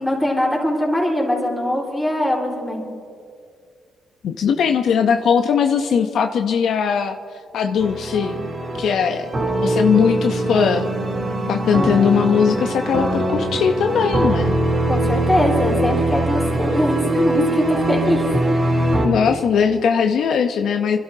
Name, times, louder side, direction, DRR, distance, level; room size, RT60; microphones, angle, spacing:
voice 1, 0.0-2.8 14.9-18.2, left 1 dB, 5° left, -3 dB, 4.0 m, -21 dB
voice 2, 4.2-7.2 7.5-8.5 8.8-9.3 9.5-10.9 11.5-14.6 19.0-21.0, left 7 dB, 70° left, 6 dB, 0.6 m, -19 dB
sound 1, 7.8-19.1, right 1 dB, 40° right, 3.4 m, -22 dB
29.0 x 12.0 x 2.7 m, 2.3 s
cardioid pair, 90°, 0 cm